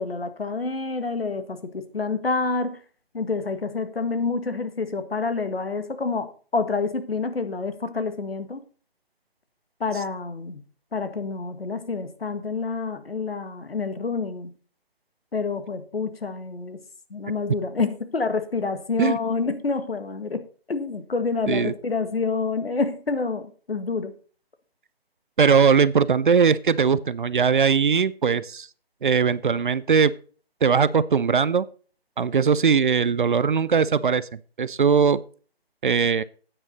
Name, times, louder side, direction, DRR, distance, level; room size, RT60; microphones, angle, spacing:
voice 1, 0.0-2.8 3.1-8.6 9.8-10.6 10.9-14.5 15.3-16.8 17.1-20.4 20.7-24.1, left 4 dB, 70° left, 10 dB, 1.7 m, -28 dB
voice 2, 25.4-28.7 29.0-30.1 30.6-31.7 32.2-35.2 35.8-36.2, right 6 dB, 55° right, 18 dB, 0.6 m, -20 dB
10.0 x 8.9 x 4.1 m, 0.40 s
figure-of-eight pair, 155°, 31 cm